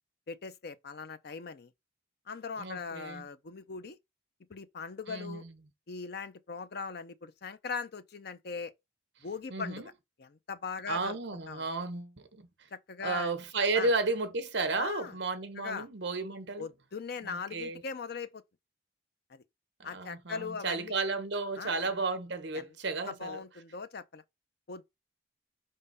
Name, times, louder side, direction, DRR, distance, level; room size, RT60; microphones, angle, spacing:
voice 1, 0.3-1.7 2.3-4.0 4.5-5.4 5.9-8.7 9.2-9.8 10.2-11.2 11.5-11.6 12.7-13.3 13.7-13.9 14.8-15.2 15.6-15.9 16.6-18.4 19.3-19.4 19.8-21.0 21.6-21.9 22.5-22.7 23.0-24.2 24.7-24.8, left 5 dB, 55° left, 0.6 m, -40 dB
voice 2, 2.6-3.3 5.1-5.5 9.5-9.9 10.9-12.5 13.0-16.7 17.2-17.8 19.8-23.4, right 3 dB, 60° right, 1.0 m, -33 dB
5.2 x 3.6 x 5.5 m
head